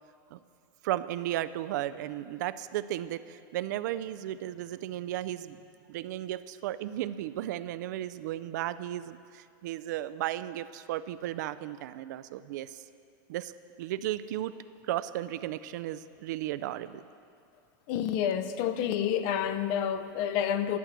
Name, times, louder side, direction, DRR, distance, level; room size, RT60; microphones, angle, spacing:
voice 1, 0.8-5.6 5.9-12.8 13.3-13.5 13.8-14.5 14.9-17.0, right 13 dB, 60° right, 15 dB, 0.4 m, -34 dB
voice 2, 17.9-20.8, left 9 dB, 40° left, 11 dB, 0.6 m, -29 dB
12.0 x 8.2 x 7.3 m, 2.5 s
supercardioid pair, 175°, 11 cm